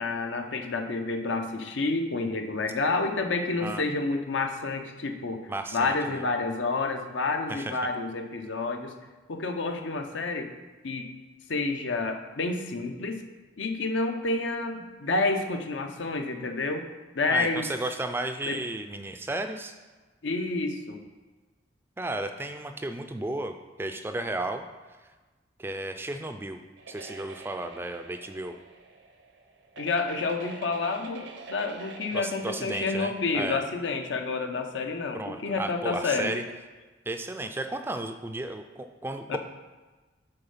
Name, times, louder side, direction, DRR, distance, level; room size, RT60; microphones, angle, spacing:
voice 1, 0.0-5.4 5.7-8.9 9.3-10.5 10.8-11.1 11.5-13.2 13.6-16.8 17.1-17.7 18.5-18.6 20.2-21.0 29.8-36.3 39.3-39.4, left 3 dB, 85° left, 5 dB, 0.8 m, -29 dB
voice 2, 5.5-6.2 7.5-7.7 17.3-19.8 22.0-24.7 25.6-26.6 26.9-28.6 32.1-33.6 35.1-36.4 37.1-39.4, right 2 dB, 10° right, 7 dB, 0.3 m, -34 dB
sound 1, 26.8-33.4, right 3 dB, 80° right, 0.7 m, -46 dB
6.7 x 4.3 x 5.6 m, 1.3 s
head